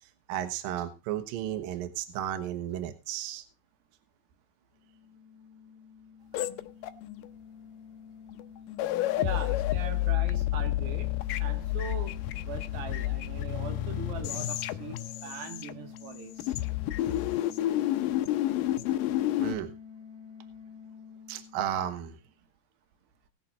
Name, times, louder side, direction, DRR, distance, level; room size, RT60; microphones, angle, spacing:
voice 1, 0.3-3.4 6.3-6.5 19.4-19.7 21.3-22.2, right 11 dB, 65° right, 2.8 m, -34 dB
sound 1, 4.8-22.3, left 6 dB, 45° left, 1.6 m, -49 dB
sound 2, 6.3-7.3 8.3-8.4 8.7-16.1 16.4-19.5, left 14 dB, 85° left, 1.9 m, -30 dB
voice 2, 9.2-11.1 11.4-16.6 17.1-17.2, right 7 dB, 85° right, 3.7 m, -41 dB
19.0 x 6.7 x 4.1 m
omnidirectional pair, 4.7 m